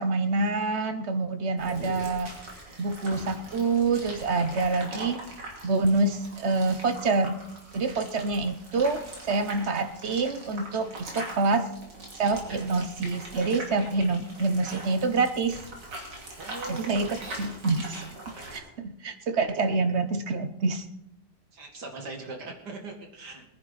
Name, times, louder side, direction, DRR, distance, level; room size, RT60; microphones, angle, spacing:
voice 1, 0.0-2.4 2.8-5.2 5.6-7.4 7.7-11.7 12.2-15.6 16.7-18.1 18.5-20.8, right 3 dB, 50° right, 9 dB, 1.0 m, -26 dB
sound 1, 1.6-18.6, right 2 dB, 90° right, 3.5 m, -42 dB
voice 2, 16.4-17.1 21.5-23.5, right 2 dB, 70° right, 3 dB, 2.6 m, -40 dB
21.5 x 10.0 x 4.1 m, 0.87 s
omnidirectional pair, 1.8 m